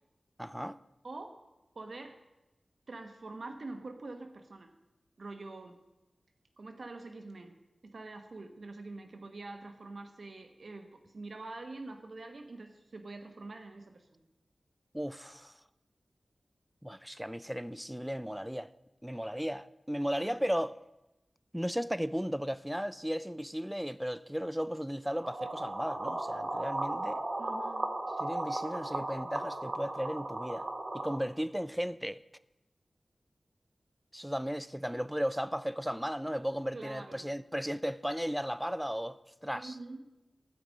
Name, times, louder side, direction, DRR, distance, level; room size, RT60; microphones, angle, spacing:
voice 1, 0.4-0.8 14.9-15.5 16.8-18.7 19.0-20.8 21.5-27.2 28.2-30.7 30.9-32.2 34.1-39.8, equal, 5° right, 0.4 m, -35 dB
voice 2, 1.0-1.4 1.7-2.2 2.9-4.7 5.2-5.8 6.6-7.5 7.8-14.2 20.2-20.3 27.4-27.9 36.7-37.3 39.5-40.0, right 2 dB, 65° right, 1.1 m, -45 dB
sound 1, 25.1-31.2, right 2 dB, 45° right, 1.8 m, -36 dB
14.0 x 5.2 x 8.5 m
wide cardioid pair, 85°, 0 cm